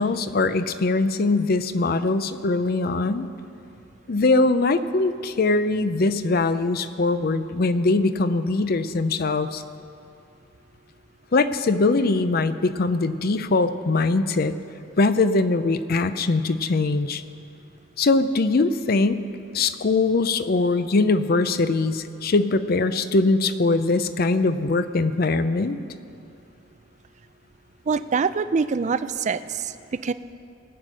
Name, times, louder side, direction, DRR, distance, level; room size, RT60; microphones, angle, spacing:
voice 1, 0.0-3.3 4.1-9.6 11.3-14.5 15.0-17.2 18.0-19.2 19.5-25.8, left 3 dB, 50° left, 12 dB, 0.5 m, -22 dB
voice 2, 27.9-29.7 30.0-30.1, right 5 dB, 40° right, 13 dB, 0.4 m, -24 dB
19.5 x 8.1 x 6.1 m, 2.6 s
head